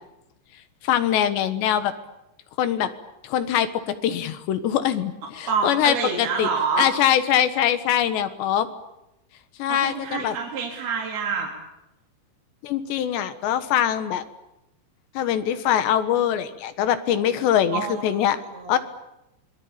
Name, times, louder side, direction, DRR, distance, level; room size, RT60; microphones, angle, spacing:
voice 1, 0.8-1.9 2.6-2.9 3.2-6.5 6.8-8.7 9.6-10.4 12.6-14.2 15.2-18.4 18.7-18.8, left 10 dB, 75° left, 11 dB, 3.6 m, -23 dB
voice 2, 5.5-6.9 9.7-11.5 17.7-18.3 18.5-18.8, right 5 dB, 60° right, -1 dB, 5.2 m, -27 dB
26.0 x 22.5 x 8.8 m, 0.91 s
omnidirectional pair, 5.1 m